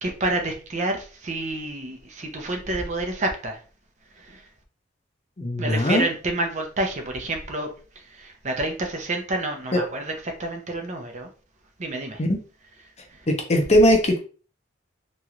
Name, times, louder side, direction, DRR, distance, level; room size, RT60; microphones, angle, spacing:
voice 1, 0.0-3.6 4.2-4.4 5.6-11.3 11.8-12.2 13.1-13.2, right 2 dB, 40° right, 3 dB, 0.6 m, -29 dB
voice 2, 5.4-6.1 9.7-9.8 12.2-12.4 13.3-14.2, left 1 dB, 35° left, 3 dB, 0.7 m, -19 dB
3.0 x 2.9 x 2.4 m, 0.37 s
head